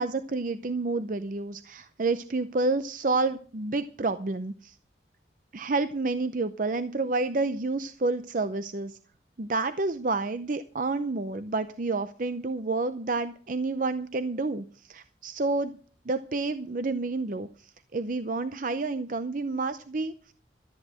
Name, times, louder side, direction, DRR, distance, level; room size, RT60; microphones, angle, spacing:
voice 1, 0.0-4.8 5.5-9.0 9.4-15.8 16.1-20.1, right 3 dB, 45° right, 11 dB, 0.6 m, -29 dB
13.5 x 9.6 x 6.3 m, 0.43 s
head